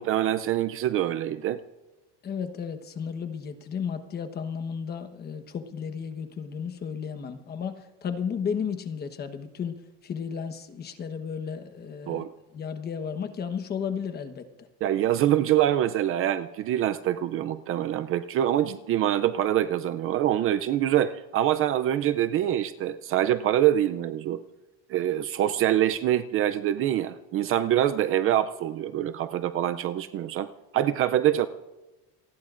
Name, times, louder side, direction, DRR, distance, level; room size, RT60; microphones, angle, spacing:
voice 1, 0.0-1.6 12.1-12.3 14.8-24.4 24.9-30.5 30.7-31.5, right 12 dB, 40° right, 11 dB, 0.5 m, -25 dB
voice 2, 2.2-12.3 12.5-14.5, left 6 dB, 25° left, 8 dB, 1.2 m, -33 dB
28.0 x 19.5 x 2.5 m, 1.1 s
cardioid pair, 160°, 35 cm